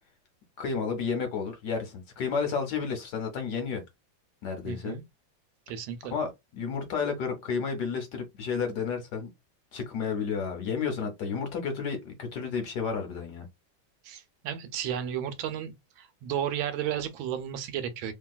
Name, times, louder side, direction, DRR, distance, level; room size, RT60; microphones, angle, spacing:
voice 1, 0.6-3.8 4.4-5.0 6.1-9.3 9.7-13.5, left 5 dB, 65° left, 1.1 m, -31 dB
voice 2, 4.6-5.0 5.7-6.1 14.0-18.1, right 9 dB, 85° right, 1.4 m, -33 dB
2.8 x 2.8 x 2.3 m
omnidirectional pair, 2.2 m